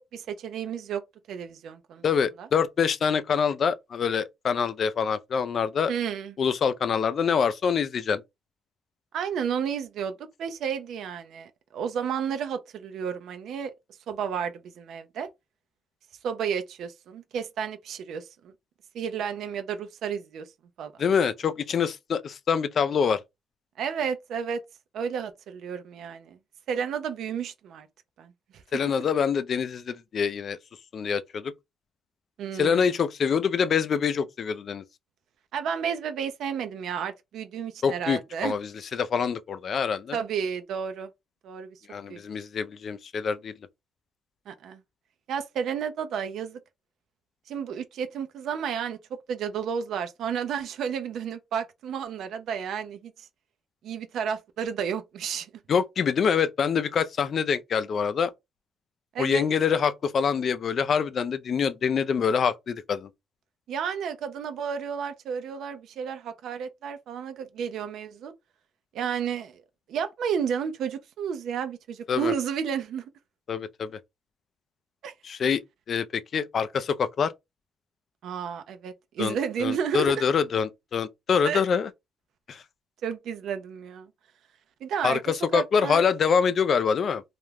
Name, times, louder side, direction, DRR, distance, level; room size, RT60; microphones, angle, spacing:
voice 1, 0.1-1.0 1.3-2.0 2.4-2.5 5.9-6.3 9.1-10.1 10.4-13.7 14.1-15.3 16.2-18.5 18.9-20.5 20.8-20.9 23.8-24.6 24.9-26.4 26.7-27.9 28.2-28.3 32.4-32.8 35.5-38.5 40.1-41.1 41.4-41.8 42.1-42.2 44.5-44.8 45.3-46.6 47.5-53.3 53.8-55.5 59.1-59.4 63.7-68.3 68.9-69.6 69.9-73.0 75.0-75.1 78.2-80.2 81.4-81.6 83.0-84.1 84.8-85.2 85.5-86.0, right 7 dB, 75° right, 0.4 m, -32 dB
voice 2, 2.0-5.9 6.4-8.2 21.0-23.2 28.7-30.6 30.9-31.5 32.5-34.8 37.8-40.2 41.9-43.5 55.7-58.3 59.2-63.1 72.1-72.3 73.5-74.0 75.2-75.6 75.9-77.3 79.2-81.9 82.5-82.6 85.0-87.2, left 6 dB, 55° left, 0.3 m, -25 dB
2.4 x 2.1 x 3.1 m
cardioid pair, 90°, 0 cm